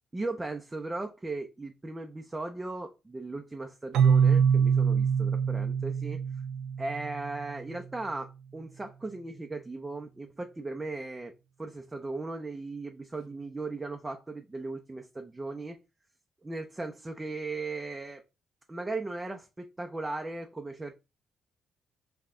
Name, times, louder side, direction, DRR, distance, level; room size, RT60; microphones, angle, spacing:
voice 1, 0.1-6.2 6.8-11.3 11.6-15.8 16.4-18.2 18.7-20.9, right 2 dB, 20° right, 0.6 m, -37 dB
Keyboard (musical), 3.9-7.6, right 7 dB, 85° right, 0.4 m, -25 dB
5.6 x 2.3 x 3.6 m
cardioid pair, 90°, 0 cm